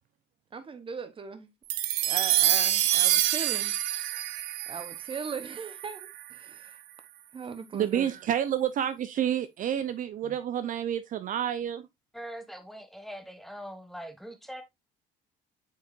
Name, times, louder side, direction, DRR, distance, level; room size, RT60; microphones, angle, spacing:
voice 1, 0.5-1.5 2.0-3.7 4.7-6.8 7.3-8.1, right 5 dB, 30° right, 1.0 m, -39 dB
sound 1, 1.7-6.2, right 13 dB, 85° right, 0.8 m, -27 dB
voice 2, 7.7-11.8, right 10 dB, 50° right, 0.6 m, -29 dB
voice 3, 12.1-14.6, equal, ahead, 1.3 m, -42 dB
7.9 x 4.8 x 2.5 m
supercardioid pair, 95°, 17 cm